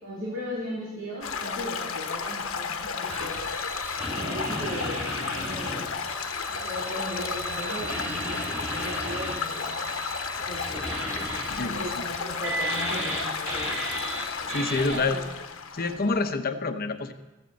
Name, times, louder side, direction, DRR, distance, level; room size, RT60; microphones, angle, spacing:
voice 1, 0.0-3.4 4.1-5.0 5.3-5.8 6.5-10.0 10.4-11.0 11.4-13.7 14.5-15.3, equal, 70° right, -5 dB, 3.6 m, -37 dB
Stream / Gurgling / Trickle dribble, 1.2-16.3, left 5 dB, 85° left, 1.2 m, -33 dB
sound 1, 3.1-15.0, right 1 dB, 10° right, 3.2 m, -35 dB
voice 2, 11.5-12.0 14.5-15.2 15.7-17.1, left 3 dB, 45° left, 7 dB, 1.0 m, -27 dB
15.5 x 14.5 x 4.2 m, 1.1 s
head